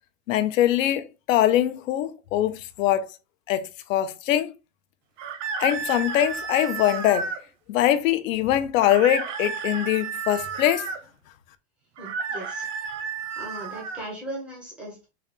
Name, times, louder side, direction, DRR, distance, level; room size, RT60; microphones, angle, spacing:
voice 1, 0.3-3.0 3.5-4.5 5.6-7.3 7.7-10.8, left 12 dB, 85° left, 0.6 m, -22 dB
sound 1, 5.2-7.4 8.8-11.0 12.0-14.0, right 5 dB, 70° right, 0.7 m, -32 dB
voice 2, 12.0-12.7 13.4-15.1, right 1 dB, 5° right, 0.4 m, -37 dB
3.8 x 2.2 x 3.1 m
supercardioid pair, 180°, 39 cm